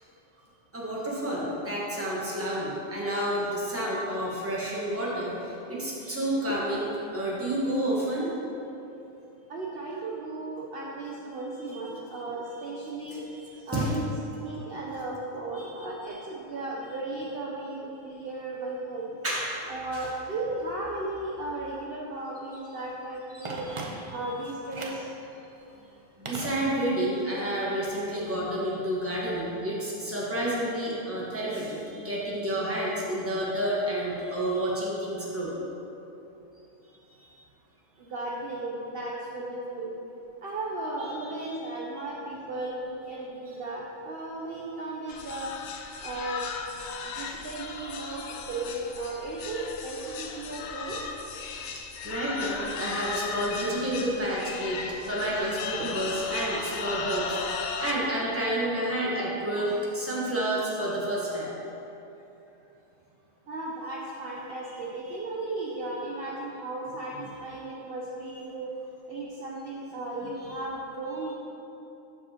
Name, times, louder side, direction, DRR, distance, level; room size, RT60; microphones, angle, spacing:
voice 1, 0.7-8.3 11.7-11.9 13.7-13.9 15.6-15.7 19.2-19.7 19.9-20.1 23.3-24.1 25.4-25.5 26.2-35.5 37.2-37.3 41.0-41.1 41.4-41.6 43.5-43.6 47.2-47.3 52.0-61.5, right 1 dB, 10° right, -5 dB, 1.1 m, -30 dB
voice 2, 9.5-13.2 13.6-14.1 14.4-19.1 19.7-23.7 24.1-25.1 38.0-39.9 40.4-45.5 46.0-46.5 47.0-51.0 55.8-55.9 59.6-59.8 63.5-68.7 69.1-71.3, right 2 dB, 55° right, -4 dB, 0.8 m, -35 dB
Telephone, 23.4-24.3 24.7-25.1 26.3-27.1 27.4-27.5, right 2 dB, 40° right, 0.5 m, -38 dB
sound 1, 45.1-57.9, left 5 dB, 70° left, 0.8 m, -36 dB
12.0 x 4.9 x 2.9 m, 2.9 s
omnidirectional pair, 1.4 m